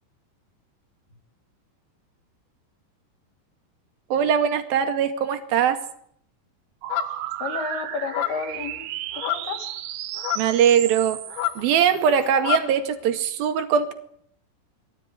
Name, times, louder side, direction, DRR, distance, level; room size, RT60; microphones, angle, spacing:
voice 1, 4.1-5.8 10.4-11.2 11.5-13.9, right 8 dB, 55° right, 7 dB, 3.4 m, -21 dB
sound 1, 6.8-12.3, right 14 dB, 75° right, 3.4 m, -34 dB
sound 2, 6.9-7.3 8.1-8.5 9.1-9.6 10.2-10.5 11.3-12.8, left 14 dB, 85° left, 4.2 m, -29 dB
voice 2, 7.4-8.9 9.2-9.8, left 5 dB, 55° left, 6 dB, 4.1 m, -31 dB
23.0 x 17.0 x 9.9 m, 0.66 s
omnidirectional pair, 5.9 m